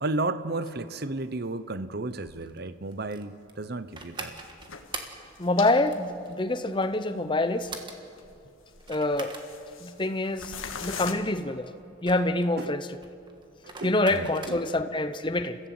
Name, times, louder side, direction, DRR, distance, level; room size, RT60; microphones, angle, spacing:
voice 1, 0.0-4.3 10.8-10.9 12.6-12.8 13.6-14.6, right 2 dB, 50° right, 13 dB, 0.9 m, -33 dB
sound 1, 1.2-1.3 2.2-2.4 2.8-2.9 4.2-5.8 6.0-6.1 6.8-6.9 7.4-7.5 8.1-8.5 8.7-10.1 10.3-11.1, left 6 dB, 80° left, 1.6 m, -40 dB
sound 2, 2.4-14.9, right 3 dB, 20° right, 1.6 m, -43 dB
voice 2, 5.4-7.7 8.9-9.3 9.8-10.5 10.8-11.7 12.0-12.9 13.8-15.6, left 2 dB, 25° left, 10 dB, 0.8 m, -26 dB
30.0 x 15.5 x 7.8 m, 2.6 s
head